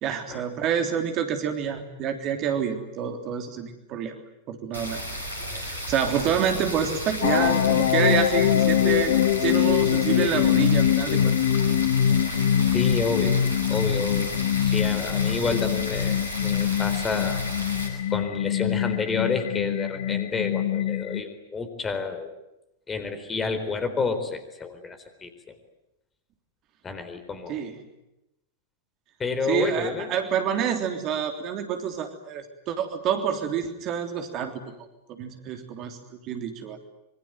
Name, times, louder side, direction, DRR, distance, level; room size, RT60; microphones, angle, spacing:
voice 1, 0.0-4.1 4.5-5.0 5.5-9.1 9.4-11.4 13.2-13.4 27.5-27.8 29.5-34.5 35.1-36.0 36.2-36.8, right 8 dB, 35° right, 6 dB, 3.4 m, -28 dB
sound 1, 4.7-17.9, equal, 85° right, 7.1 m, -34 dB
sound 2, 7.2-21.2, left 10 dB, 55° left, 1.1 m, -23 dB
voice 2, 12.7-13.4 13.7-14.3 14.6-17.4 18.1-22.3 22.9-25.3 26.8-27.6 29.2-30.1, left 4 dB, 20° left, 9 dB, 4.1 m, -29 dB
26.0 x 24.0 x 9.4 m, 0.92 s
figure-of-eight pair, 90°, 0 cm